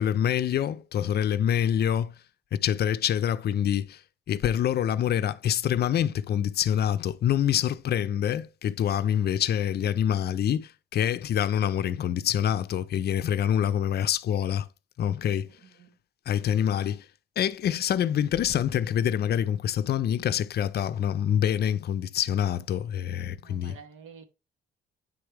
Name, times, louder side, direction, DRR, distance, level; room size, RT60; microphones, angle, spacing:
voice 1, 0.0-2.2 2.5-4.0 4.3-14.7 15.0-15.5 16.3-17.1 17.4-23.8, left 9 dB, 55° left, 0.5 m, -26 dB
voice 2, 23.4-24.2, right 6 dB, 85° right, 1.2 m, -49 dB
9.4 x 3.4 x 3.2 m
cardioid pair, 90°, 20 cm